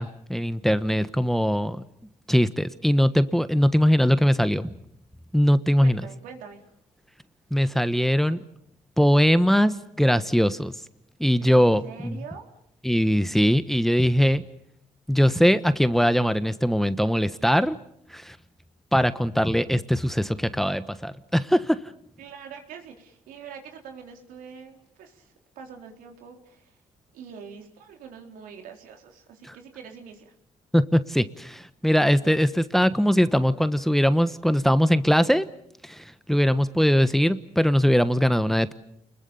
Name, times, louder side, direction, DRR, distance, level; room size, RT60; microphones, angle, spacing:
voice 1, 0.0-1.8 2.3-4.7 5.3-6.0 7.5-8.4 9.0-10.7 11.2-12.2 12.8-14.4 15.1-17.7 18.1-18.4 18.9-21.8 30.7-35.4 35.8-38.7, equal, ahead, 12 dB, 1.2 m, -21 dB
voice 2, 5.8-6.6 11.4-12.5 22.2-26.8 27.1-30.3, right 6 dB, 85° right, 4 dB, 4.0 m, -44 dB
30.0 x 21.5 x 7.1 m, 0.74 s
cardioid pair, 85°, 14 cm